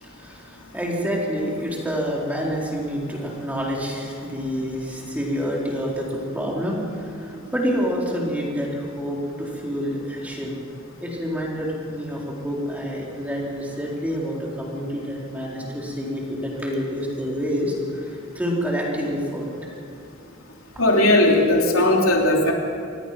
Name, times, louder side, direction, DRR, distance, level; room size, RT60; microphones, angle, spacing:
voice 1, 0.0-10.6 11.0-19.5, equal, 5° right, -3 dB, 4.1 m, -28 dB
voice 2, 20.8-22.5, left 1 dB, 85° left, 0 dB, 3.1 m, -17 dB
26.5 x 19.0 x 5.9 m, 2.4 s
head